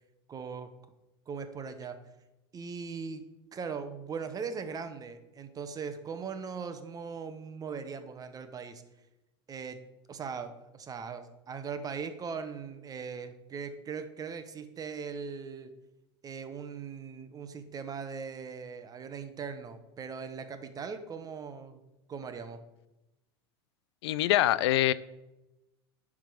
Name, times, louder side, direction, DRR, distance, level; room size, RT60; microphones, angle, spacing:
voice 1, 0.3-0.7 1.3-2.0 2.5-8.8 9.5-9.8 10.1-15.7 16.2-21.8 22.1-22.6, right 5 dB, 25° right, 9 dB, 1.0 m, -39 dB
voice 2, 24.0-24.9, left 14 dB, 75° left, 18 dB, 0.4 m, -24 dB
10.5 x 3.7 x 6.3 m, 0.98 s
hypercardioid pair, 100°, 14 cm